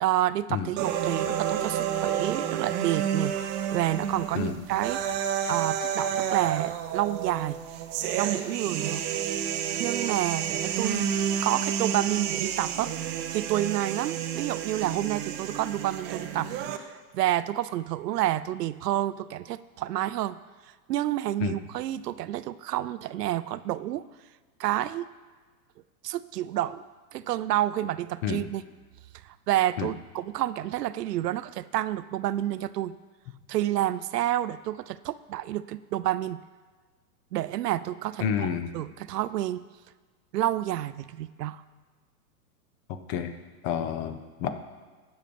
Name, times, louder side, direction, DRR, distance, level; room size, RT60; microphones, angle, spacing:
voice 1, 0.0-7.6 8.1-9.1 9.8-11.1 11.4-12.9 13.3-16.5 16.8-20.4 20.9-24.1 24.6-25.1 26.0-26.8 27.1-28.6 29.2-33.0 33.5-36.4 37.3-38.5 38.7-39.7 40.3-41.6, right 13 dB, 85° right, 16 dB, 0.6 m, -29 dB
sound 1, 0.8-16.8, right 9 dB, 25° right, 0.5 m, -30 dB
voice 2, 38.2-38.7 42.9-43.3 43.6-44.5, left 8 dB, 40° left, 9 dB, 0.9 m, -29 dB
15.0 x 5.4 x 5.2 m, 1.4 s
hypercardioid pair, 130°, 47 cm